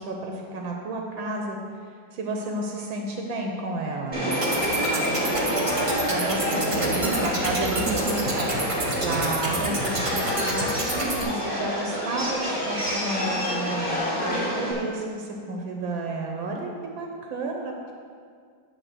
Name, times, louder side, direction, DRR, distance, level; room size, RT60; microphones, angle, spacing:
voice 1, 0.0-1.6 2.1-4.4 6.1-7.2 9.0-17.7, right 2 dB, 80° right, 1 dB, 1.6 m, -32 dB
Subway metro underground, 4.1-14.7, equal, 5° left, 1.9 m, -28 dB
sound 1, 4.3-11.2, right 1 dB, 25° right, 0.8 m, -30 dB
voice 2, 4.8-5.9 6.4-9.3, right 3 dB, 55° right, 1 dB, 1.0 m, -31 dB
10.5 x 4.0 x 6.5 m, 2.1 s
omnidirectional pair, 2.1 m